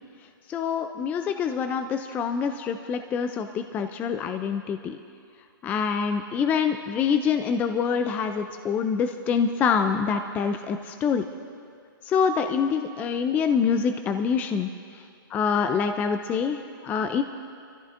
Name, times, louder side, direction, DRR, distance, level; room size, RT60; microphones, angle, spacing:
voice 1, 0.5-5.0 5.6-11.3 12.0-15.0 15.3-17.2, left 6 dB, 15° left, 7 dB, 0.3 m, -26 dB
27.0 x 14.5 x 2.5 m, 2.4 s
hypercardioid pair, 150°, 12 cm